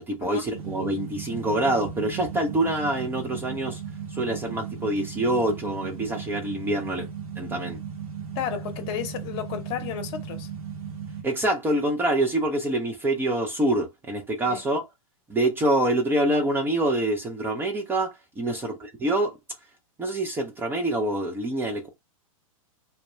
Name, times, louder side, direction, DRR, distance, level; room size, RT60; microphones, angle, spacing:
voice 1, 0.1-3.8 4.2-7.1 7.4-7.8 11.2-14.8 15.3-19.3 20.0-21.9, right 1 dB, 10° right, 0.4 m, -26 dB
sound 1, 0.5-11.2, right 7 dB, 80° right, 0.8 m, -36 dB
voice 2, 8.3-10.5 14.4-14.6 18.4-18.6, left 9 dB, 45° left, 0.8 m, -33 dB
2.2 x 2.1 x 2.9 m
hypercardioid pair, 115°, 18 cm